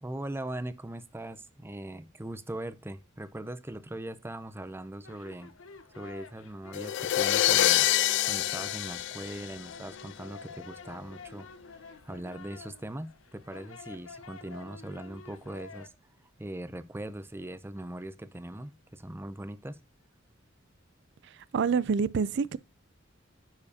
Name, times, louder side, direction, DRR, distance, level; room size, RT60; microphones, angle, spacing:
voice 1, 0.0-5.5 6.0-7.9 8.2-15.9 16.4-19.8, right 1 dB, 10° right, 0.5 m, -40 dB
sound 1, 5.0-15.9, left 5 dB, 90° left, 0.9 m, -49 dB
sound 2, 6.7-10.0, left 13 dB, 60° left, 0.3 m, -26 dB
voice 2, 21.5-22.6, right 5 dB, 60° right, 0.4 m, -26 dB
9.7 x 4.7 x 2.8 m
head